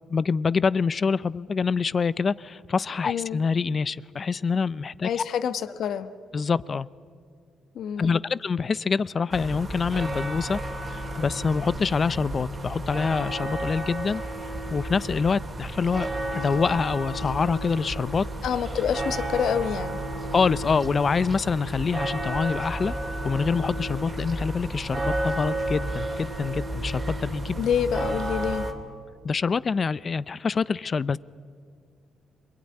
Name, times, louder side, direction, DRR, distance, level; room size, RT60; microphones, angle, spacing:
voice 1, 0.1-5.2 6.3-6.9 8.0-10.6 10.9-14.2 14.7-18.2 20.3-23.0 23.2-27.6 29.2-31.2, left 5 dB, 40° left, 19 dB, 0.5 m, -26 dB
voice 2, 3.1-3.4 5.0-6.1 7.7-8.2 18.4-20.0 27.6-28.7, left 8 dB, 70° left, 12 dB, 1.2 m, -27 dB
sound 1, 9.3-28.7, right 1 dB, 30° right, 2.9 m, -32 dB
27.0 x 19.0 x 9.8 m, 2.2 s
cardioid pair, 90°, 0 cm